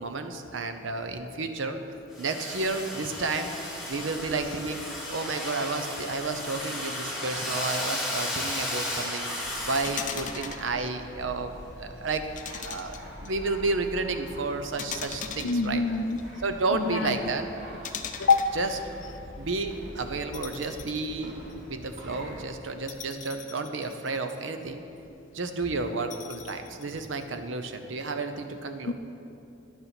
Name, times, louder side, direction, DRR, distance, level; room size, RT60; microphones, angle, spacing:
voice 1, 0.0-1.8 2.2-3.5 3.9-4.8 5.1-9.3 9.6-15.8 16.4-17.5 18.5-18.7 19.4-21.3 21.7-24.8 25.3-28.9, right 3 dB, 85° right, 7 dB, 0.8 m, -31 dB
Domestic sounds home sounds, 2.1-10.4, left 1 dB, ahead, 1.6 m, -34 dB
sound 1, 9.4-22.5, equal, 45° right, 1.9 m, -45 dB
sound 2, 9.8-10.7 12.3-13.3 14.8-16.2 17.8-18.6 20.3-21.1 21.5-21.6 22.9-24.5 26.1-27.2, left 7 dB, 40° left, 0.6 m, -39 dB
voice 2, 15.4-16.2 16.7-17.2 18.2-18.5 28.9-29.0, left 4 dB, 90° left, 10 dB, 0.5 m, -25 dB
10.5 x 7.0 x 5.9 m, 2.7 s
head